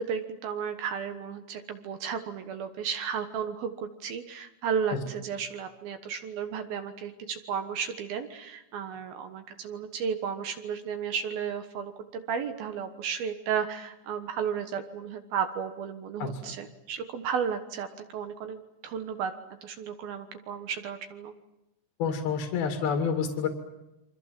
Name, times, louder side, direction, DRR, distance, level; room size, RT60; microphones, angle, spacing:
voice 1, 0.0-17.9 18.1-19.3 19.6-21.3, right 7 dB, 65° right, 8 dB, 2.9 m, -33 dB
voice 2, 16.2-16.5 22.0-23.5, left 6 dB, 60° left, 4 dB, 4.1 m, -28 dB
28.5 x 25.0 x 7.5 m, 0.93 s
omnidirectional pair, 5.2 m